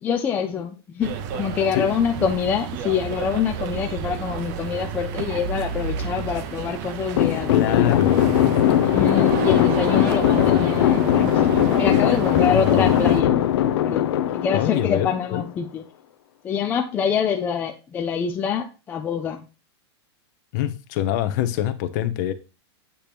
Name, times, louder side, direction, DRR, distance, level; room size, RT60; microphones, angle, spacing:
voice 1, 0.0-8.0 8.8-13.4 13.8-15.8 16.4-19.5, left 7 dB, 15° left, 0.3 m, -26 dB
sound 1, 1.0-13.2, right 8 dB, 40° right, 0.6 m, -31 dB
sound 2, 7.2-15.5, left 11 dB, 75° left, 0.6 m, -20 dB
voice 2, 7.5-8.2 11.9-12.2 12.5-12.9 14.5-15.4 20.5-22.3, left 12 dB, 45° left, 0.7 m, -24 dB
8.5 x 3.0 x 5.1 m
supercardioid pair, 165°, 14 cm